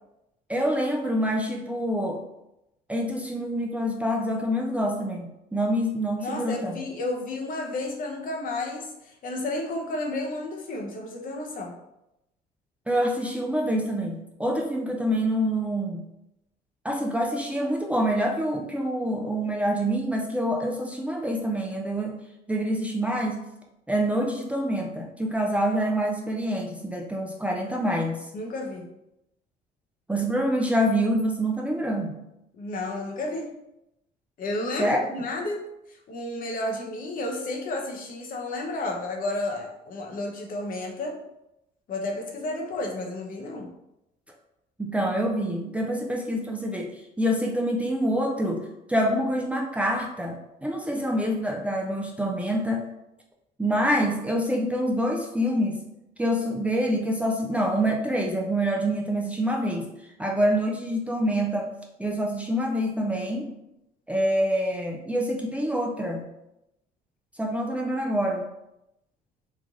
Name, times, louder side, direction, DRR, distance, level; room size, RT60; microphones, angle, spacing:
voice 1, 0.5-2.2 2.9-6.8 12.9-16.0 16.8-22.2 22.5-23.4 23.9-28.2 30.1-32.2 34.8-35.0 44.8-52.8 53.6-55.8 56.2-59.9 60.2-61.7 62.0-63.5 64.1-66.2 67.4-68.4, equal, 10° right, 0 dB, 0.4 m, -26 dB
voice 2, 6.2-11.7 28.3-28.9 32.5-33.5 34.4-35.6 35.9-41.2 41.9-43.7, left 2 dB, 55° left, 1 dB, 0.8 m, -32 dB
3.2 x 2.5 x 3.6 m, 0.87 s
cardioid pair, 110°, 17 cm